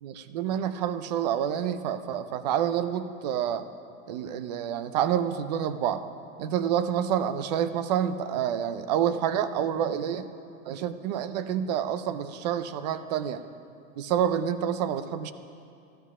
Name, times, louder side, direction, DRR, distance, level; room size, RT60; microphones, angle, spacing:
voice 1, 0.0-3.7 4.1-6.0 6.4-10.3 10.7-13.4 14.0-15.3, right 9 dB, 30° right, 12 dB, 0.4 m, -28 dB
13.5 x 12.0 x 6.0 m, 2.5 s
supercardioid pair, 155°, 43 cm